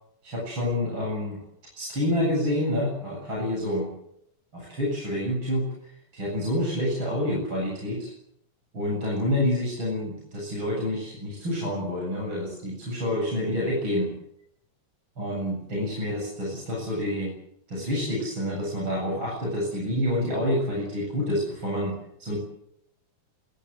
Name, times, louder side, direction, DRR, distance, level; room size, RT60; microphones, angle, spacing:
voice 1, 0.2-1.4 1.8-3.9 4.5-8.1 8.7-14.1 15.2-17.3 17.7-22.4, left 1 dB, 25° right, -3 dB, 8.4 m, -28 dB
26.5 x 20.5 x 8.3 m, 0.77 s
omnidirectional pair, 5.1 m